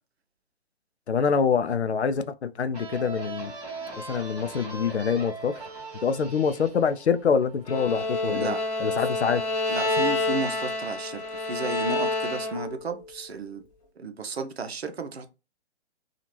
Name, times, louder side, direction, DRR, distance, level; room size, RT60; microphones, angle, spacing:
voice 1, 1.1-3.5 4.1-5.5 6.0-9.5, left 6 dB, 80° left, 0.5 m, -25 dB
sound 1, 2.7-8.2, right 3 dB, 10° right, 0.6 m, -40 dB
Bowed string instrument, 7.7-12.8, left 2 dB, 35° left, 1.3 m, -28 dB
voice 2, 8.3-8.6 9.7-13.6 14.0-15.3, right 3 dB, 70° right, 0.6 m, -33 dB
2.8 x 2.4 x 3.0 m
figure-of-eight pair, 130°, 33 cm